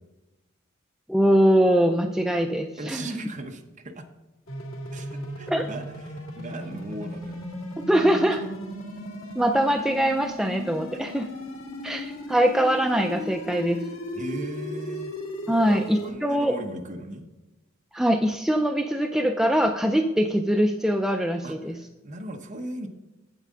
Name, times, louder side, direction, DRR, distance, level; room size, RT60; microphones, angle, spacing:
voice 1, 1.1-3.0 5.5-5.7 7.9-8.4 9.4-11.3 11.8-13.8 15.5-16.5 17.9-21.8, equal, ahead, 4 dB, 0.4 m, -22 dB
voice 2, 2.8-4.1 4.9-7.4 8.3-8.4 14.1-15.1 15.5-17.3 21.4-22.9, right 1 dB, 40° right, 4 dB, 0.9 m, -37 dB
sound 1, 4.5-16.1, left 1 dB, 80° left, 1.9 m, -36 dB
8.9 x 7.5 x 3.7 m, 1.1 s
head